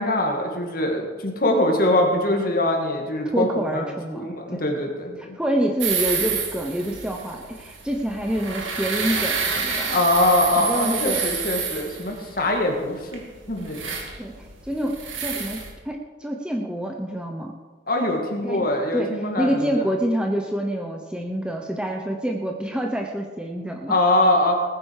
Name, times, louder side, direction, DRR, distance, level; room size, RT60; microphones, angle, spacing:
voice 1, 0.0-3.5 3.7-3.8 4.1-5.4 9.9-13.9 17.9-19.8 23.9-24.6, left 1 dB, 50° left, 2 dB, 2.3 m, -23 dB
voice 2, 3.3-4.6 5.2-10.0 10.6-11.3 14.2-17.5 18.4-24.0, equal, 5° right, 1 dB, 0.9 m, -27 dB
sound 1, 5.8-15.7, right 5 dB, 85° right, 2.3 m, -29 dB
19.5 x 9.7 x 4.9 m, 1.4 s
head